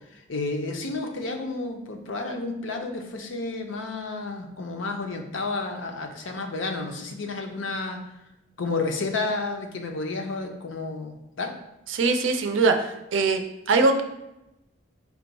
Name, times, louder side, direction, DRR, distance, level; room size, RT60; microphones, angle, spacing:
voice 1, 0.3-8.0 8.6-11.5, left 3 dB, 70° left, 4 dB, 0.6 m, -31 dB
voice 2, 11.9-13.4 13.7-14.0, right 3 dB, 70° right, 6 dB, 0.4 m, -22 dB
4.5 x 2.2 x 4.0 m, 0.91 s
head